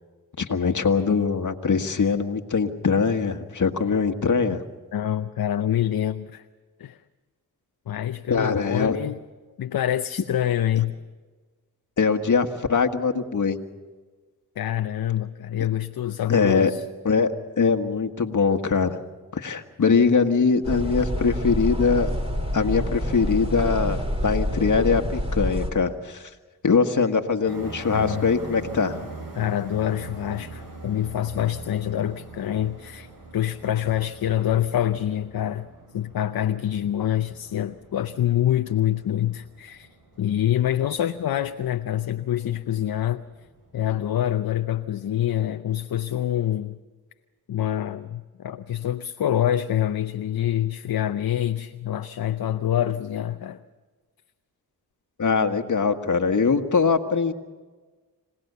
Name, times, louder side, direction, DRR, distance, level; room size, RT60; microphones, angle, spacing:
voice 1, 0.4-4.6 8.3-9.0 12.0-13.6 16.3-16.7 17.0-17.3 17.6-19.0 19.3-22.1 22.5-26.2 26.6-29.0 55.2-57.3, left 5 dB, 50° left, 1.7 m, -22 dB
voice 2, 4.9-6.4 6.8-7.0 7.9-9.2 9.6-10.9 14.6-16.9 27.9-28.3 29.3-35.7 35.9-39.9 40.2-43.2 43.7-46.8 47.5-53.6, left 11 dB, 65° left, 0.8 m, -26 dB
sound 1, 20.6-25.7, equal, 15° right, 3.5 m, -27 dB
sound 2, 27.5-44.0, right 3 dB, 55° right, 6.3 m, -43 dB
26.0 x 18.0 x 6.9 m
cardioid pair, 60°, 38 cm